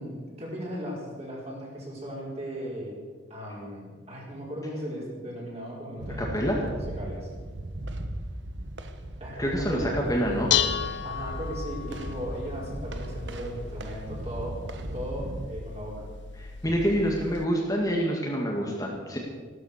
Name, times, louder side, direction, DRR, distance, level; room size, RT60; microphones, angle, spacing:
voice 1, 0.0-3.0 3.3-7.3 9.2-10.0 11.0-16.1, equal, 35° right, -4 dB, 5.2 m, -37 dB
sound 1, 6.0-15.4, right 1 dB, 70° right, 1.3 m, -37 dB
voice 2, 6.2-6.6 9.4-10.5 16.4-19.2, equal, 20° left, -2 dB, 2.0 m, -27 dB
Dishes pots and pans, 10.0-17.4, left 8 dB, 70° left, 0.8 m, -34 dB
15.5 x 13.0 x 6.8 m, 1.5 s
head